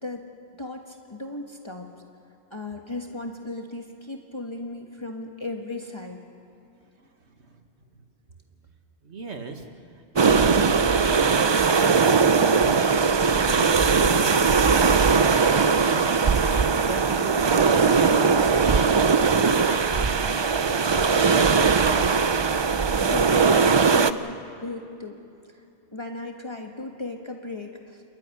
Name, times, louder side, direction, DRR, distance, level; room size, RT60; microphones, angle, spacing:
voice 1, 0.6-1.9 2.5-6.2 23.1-25.2 25.9-28.0, left 2 dB, 25° left, 2 dB, 1.5 m, -36 dB
voice 2, 7.0-7.6 7.9-8.0 9.0-9.6 9.9-10.8 11.1-11.4 11.7-12.8 13.1-22.2, right 3 dB, 75° right, 4 dB, 2.1 m, -38 dB
sound 1, 10.1-24.1, right 5 dB, 35° right, 0.4 m, -20 dB
29.0 x 13.0 x 9.7 m, 2.6 s
omnidirectional pair, 1.1 m